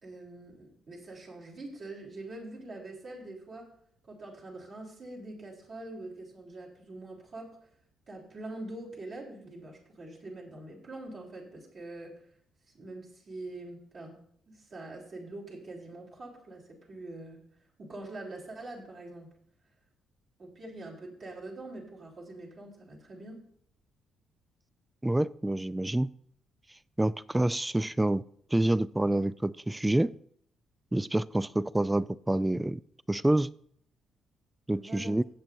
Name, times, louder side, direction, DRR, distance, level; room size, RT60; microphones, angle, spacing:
voice 1, 0.0-3.7 4.1-7.7 8.1-12.2 12.7-17.5 17.8-19.3 20.4-23.5 34.7-35.1, right 2 dB, 55° right, 3.6 m, -44 dB
voice 2, 25.0-26.1 27.0-28.2 28.5-30.2 30.9-32.8 33.1-33.5 34.7-35.2, right 1 dB, 10° right, 0.3 m, -27 dB
16.5 x 7.7 x 2.7 m
cardioid pair, 90°, 0 cm